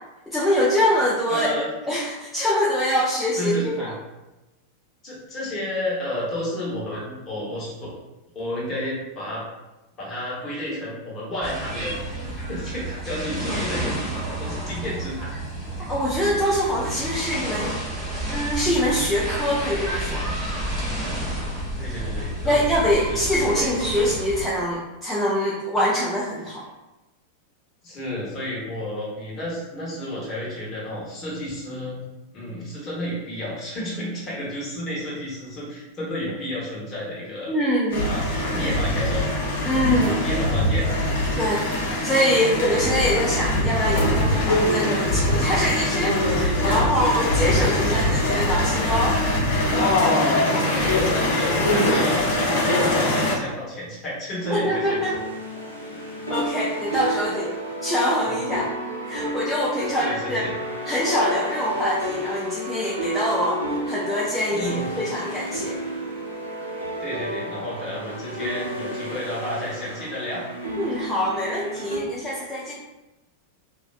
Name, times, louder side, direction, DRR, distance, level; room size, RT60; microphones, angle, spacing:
voice 1, 0.3-1.6 1.9-3.7 15.9-17.7 18.3-20.5 22.4-26.6 37.5-38.1 39.6-40.2 41.4-41.6 42.0-49.2 54.5-55.2 56.3-57.5 57.8-58.7 59.1-60.5 60.9-65.8 70.8-72.7, equal, 5° left, -7 dB, 0.4 m, -24 dB
voice 2, 1.3-1.7 3.4-3.9 5.0-7.9 8.3-9.4 10.0-12.0 12.5-15.3 21.8-22.6 23.0-23.2 23.5-24.1 27.8-32.0 32.3-37.5 38.0-39.2 40.1-40.9 50.4-55.2 58.2-58.4 59.8-60.5 64.5-64.9 67.0-70.5, equal, 30° left, -6 dB, 1.0 m, -31 dB
sound 1, 11.4-24.5, right 1 dB, 20° right, 1.0 m, -30 dB
sound 2, 37.9-53.3, left 1 dB, 60° left, 0.6 m, -22 dB
sound 3, 54.4-72.0, equal, 85° right, 0.5 m, -31 dB
2.4 x 2.2 x 2.4 m, 1.0 s
figure-of-eight pair, 90°, 0 cm